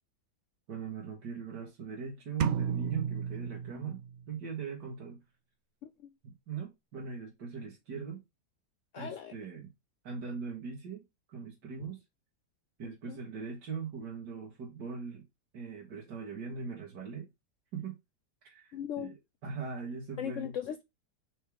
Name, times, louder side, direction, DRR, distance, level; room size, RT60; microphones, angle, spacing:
voice 1, 0.7-4.0 4.3-5.2 6.2-8.2 9.0-9.7 10.0-11.0 11.3-12.0 12.8-15.2 15.5-17.3 17.7-18.0 18.4-19.2 19.4-20.6, right 5 dB, 85° right, 2.2 m, -40 dB
sound 1, 2.4-4.3, right 7 dB, 65° right, 0.7 m, -33 dB
voice 2, 8.9-9.3 12.8-13.2 18.7-19.2 20.2-20.8, left 9 dB, 70° left, 0.7 m, -39 dB
5.5 x 3.6 x 4.8 m
omnidirectional pair, 1.8 m